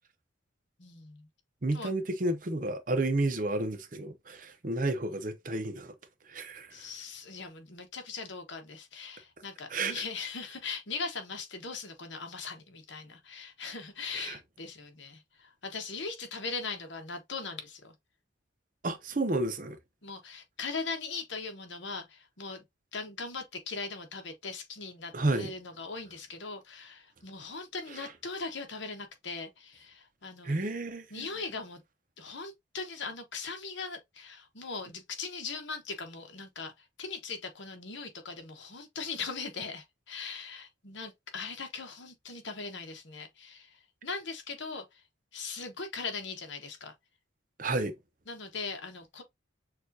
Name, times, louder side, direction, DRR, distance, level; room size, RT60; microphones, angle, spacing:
voice 1, 0.8-1.3 1.7-1.9 6.7-17.9 20.0-22.6 22.9-30.6 31.1-31.8 32.2-36.7 37.0-43.7 44.0-44.8 45.3-46.9 48.3-49.2, left 4 dB, 65° left, 1.2 m, -40 dB
voice 2, 1.6-5.9 6.3-6.7 9.7-9.9 14.1-14.4 18.8-19.8 25.1-25.5 30.4-31.3 47.6-47.9, right 2 dB, 40° right, 0.7 m, -31 dB
6.4 x 2.5 x 2.6 m
head